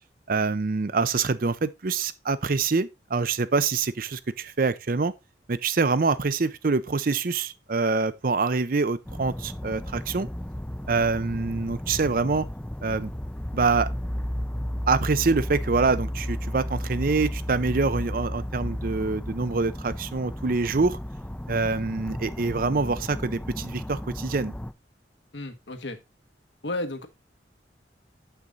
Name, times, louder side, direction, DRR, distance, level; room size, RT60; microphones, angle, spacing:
voice 1, 0.3-5.1 5.5-10.3 10.9-12.5 12.8-13.1 13.5-13.9 14.9-21.0 21.5-24.5, right 4 dB, 50° right, 0.6 m, -25 dB
sound 1, 9.0-24.7, equal, 5° left, 0.4 m, -33 dB
voice 2, 25.3-26.0 26.6-27.1, left 2 dB, 80° left, 1.3 m, -33 dB
7.9 x 5.9 x 3.9 m
head